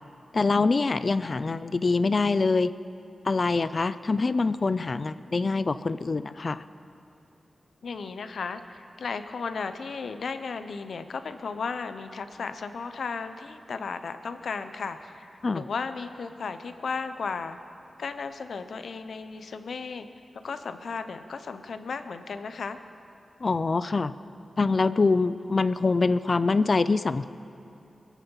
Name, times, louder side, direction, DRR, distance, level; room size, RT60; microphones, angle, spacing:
voice 1, 0.3-2.7 3.3-6.6 15.4-15.6 23.4-24.1 24.6-27.3, left 3 dB, 45° left, 14 dB, 0.4 m, -24 dB
voice 2, 7.8-17.6 18.0-20.1 20.4-22.8, left 5 dB, 80° left, 10 dB, 0.7 m, -35 dB
23.0 x 8.3 x 5.6 m, 2.8 s
wide cardioid pair, 110°, 0 cm